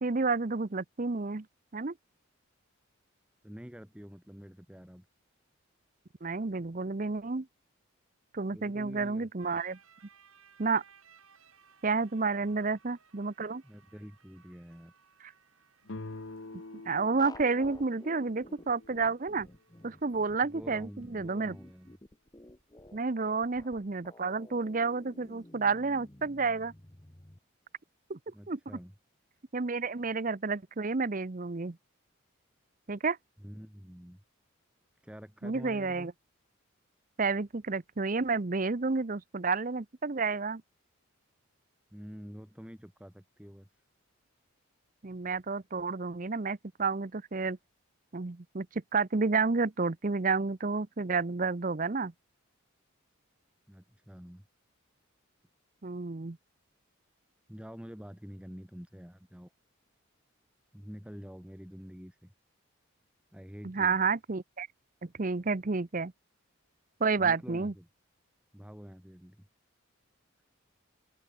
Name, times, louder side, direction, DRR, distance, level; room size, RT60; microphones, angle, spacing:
voice 1, 0.0-1.4 1.7-1.9 6.2-7.5 8.3-9.8 10.6-10.8 11.8-13.6 16.9-19.5 19.8-21.6 22.9-26.7 28.1-28.2 28.5-28.6 29.5-31.8 32.9-33.2 35.4-36.1 37.2-40.6 45.0-47.6 48.1-52.1 55.8-56.4 63.6-64.7 65.0-66.1 67.0-67.7, right 4 dB, 40° right, 0.7 m, -30 dB
voice 2, 3.4-5.1 8.5-9.3 12.4-12.5 13.6-14.9 20.4-21.9 23.2-23.3 28.3-28.9 33.4-34.2 35.0-36.1 41.9-43.8 53.7-54.4 57.5-59.5 60.7-62.3 63.3-64.0 67.2-67.9 68.5-69.5, equal, 5° right, 1.3 m, -47 dB
sound 1, 9.4-22.0, right 6 dB, 80° right, 6.4 m, -64 dB
sound 2, 15.8-19.5, left 2 dB, 60° left, 1.2 m, -46 dB
sound 3, 17.2-27.4, left 1 dB, 20° left, 1.1 m, -52 dB
head